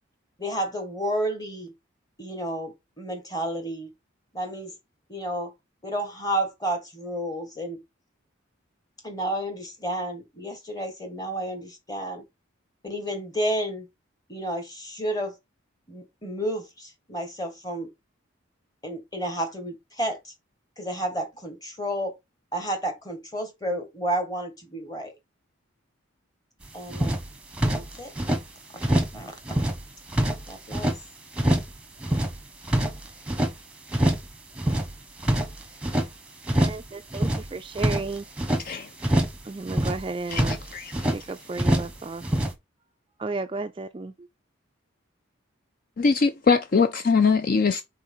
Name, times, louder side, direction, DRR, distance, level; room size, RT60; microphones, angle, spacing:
voice 1, 0.4-1.7 2.2-3.9 4.3-4.7 5.1-5.5 5.8-7.8 9.0-12.2 12.8-13.9 14.3-15.3 15.9-17.9 18.8-20.3 20.8-22.1 22.5-25.1 26.7-27.2 27.6-28.1 28.7-29.3 30.5-30.9, right 1 dB, 20° left, 1.6 m, -31 dB
sound 1, 26.6-26.7 26.9-28.4 28.8-29.2 29.5-31.0 31.3-31.8 32.0-33.5 33.9-34.3 34.6-36.1 36.4-36.9 37.1-38.6 39.0-39.4 39.7-41.2 41.6-42.0 42.2-42.5, right 1 dB, 5° right, 1.0 m, -25 dB
voice 2, 36.6-38.2 39.4-40.6 41.1-42.2 43.2-44.1, right 3 dB, 25° right, 0.3 m, -33 dB
voice 3, 40.3-40.9 46.0-47.8, left 5 dB, 45° left, 0.4 m, -22 dB
4.4 x 3.9 x 5.5 m
head